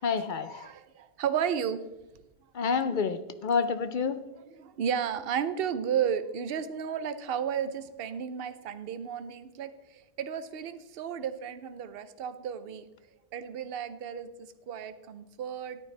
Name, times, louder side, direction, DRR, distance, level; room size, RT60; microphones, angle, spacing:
voice 1, 0.0-0.7 2.5-4.2, left 5 dB, 55° left, 11 dB, 0.6 m, -28 dB
voice 2, 0.5-1.8 4.3-12.9 13.3-14.3 14.7-15.8, right 8 dB, 60° right, 12 dB, 0.8 m, -33 dB
13.0 x 8.7 x 3.3 m, 0.95 s
omnidirectional pair, 1.2 m